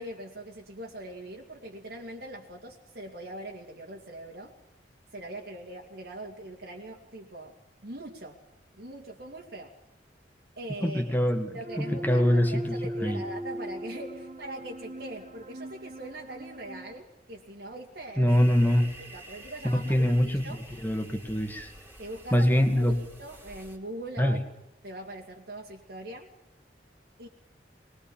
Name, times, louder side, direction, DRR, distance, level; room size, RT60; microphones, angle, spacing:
voice 1, 0.0-4.5 5.1-7.6 7.8-8.4 8.8-9.7 10.6-11.2 11.5-18.3 19.0-20.6 22.0-24.4 24.8-26.3 27.2-27.3, right 1 dB, 65° right, -2 dB, 2.8 m, -42 dB
voice 2, 10.8-12.6 13.0-13.2 18.2-18.9 19.6-20.4 20.8-21.7 22.3-23.0 24.2-24.4, equal, 10° left, 5 dB, 2.3 m, -24 dB
sound 1, 11.6-17.0, right 1 dB, 40° right, 2.7 m, -39 dB
sound 2, 18.3-23.8, right 1 dB, 10° right, 3.3 m, -48 dB
22.5 x 21.5 x 7.3 m, 0.84 s
head